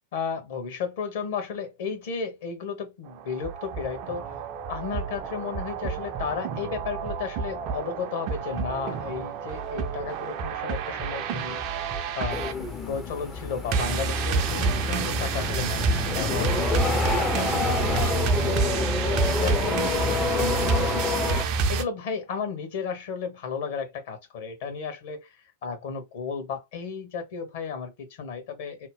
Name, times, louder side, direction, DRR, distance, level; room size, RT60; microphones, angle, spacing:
voice 1, 0.1-4.4 4.7-12.4 12.9-17.5 18.5-18.9 19.2-21.4 21.7-28.9, left 6 dB, 55° left, 1.1 m, -34 dB
sound 1, 3.1-21.8, right 5 dB, 40° right, 0.5 m, -28 dB
sound 2, 12.3-21.4, left 4 dB, 20° left, 0.6 m, -29 dB
2.8 x 2.1 x 3.5 m
figure-of-eight pair, 90°, 0 cm